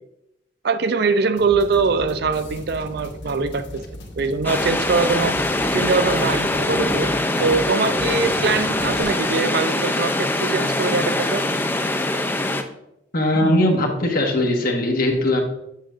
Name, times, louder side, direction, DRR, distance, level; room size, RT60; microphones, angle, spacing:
voice 1, 0.6-3.9 4.2-5.3 5.7-7.1 7.4-11.5 13.3-13.5, right 4 dB, 60° right, 10 dB, 0.4 m, -22 dB
sound 1, 1.4-9.0, left 1 dB, 70° left, 1.4 m, -38 dB
sound 2, 4.4-12.6, left 1 dB, 10° left, 0.4 m, -23 dB
voice 2, 13.1-15.4, left 1 dB, 50° left, 2 dB, 1.3 m, -20 dB
7.5 x 7.1 x 2.5 m, 0.85 s
head